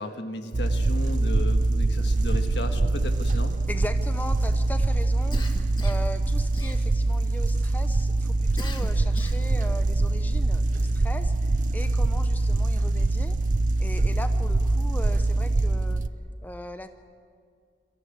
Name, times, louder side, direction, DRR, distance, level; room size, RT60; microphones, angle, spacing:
voice 1, 0.0-3.5, left 1 dB, 80° left, 6 dB, 1.6 m, -35 dB
sound 1, 0.5-16.1, right 2 dB, 45° right, 0.5 m, -24 dB
voice 2, 3.7-13.4 13.8-16.0 16.4-16.9, left 1 dB, 10° left, 8 dB, 0.6 m, -39 dB
Cough, 5.3-6.1 6.6-7.2 8.6-9.6, left 2 dB, 25° left, 1.3 m, -40 dB
23.0 x 14.5 x 8.7 m, 2.2 s
head